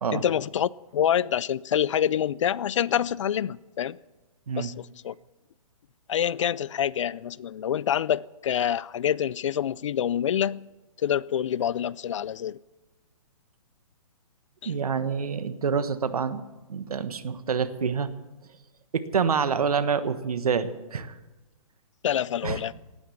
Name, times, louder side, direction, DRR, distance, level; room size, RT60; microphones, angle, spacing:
voice 1, 0.1-4.0 4.5-5.1 6.1-10.7 11.0-12.6 14.6-14.7 22.0-22.7, left 9 dB, 55° left, 0.4 m, -26 dB
voice 2, 14.6-16.4 16.7-18.1 18.9-21.1 22.4-22.6, right 6 dB, 90° right, 1.3 m, -27 dB
18.0 x 9.5 x 7.2 m
hypercardioid pair, 165°, 19 cm